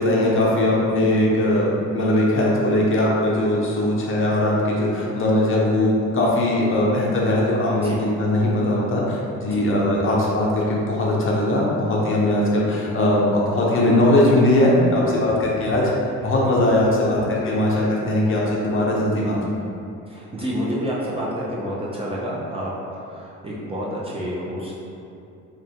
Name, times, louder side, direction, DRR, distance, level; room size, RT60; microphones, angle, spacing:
voice 1, 0.0-15.9 16.2-19.4, left 1 dB, 45° left, -4 dB, 0.5 m, -20 dB
voice 2, 20.1-24.7, equal, 20° right, -6 dB, 0.4 m, -29 dB
2.3 x 2.1 x 2.7 m, 2.6 s
cardioid pair, 90°, 30 cm